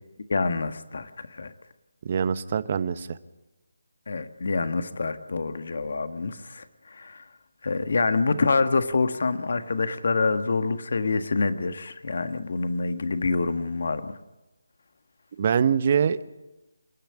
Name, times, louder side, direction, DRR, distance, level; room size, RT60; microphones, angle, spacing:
voice 1, 0.3-1.5 4.1-7.2 7.6-14.2, left 3 dB, 55° left, 10 dB, 1.6 m, -26 dB
voice 2, 2.0-3.2 15.4-16.2, right 7 dB, 35° right, 14 dB, 1.0 m, -24 dB
28.0 x 10.5 x 10.0 m, 1.0 s
figure-of-eight pair, 155°, 0 cm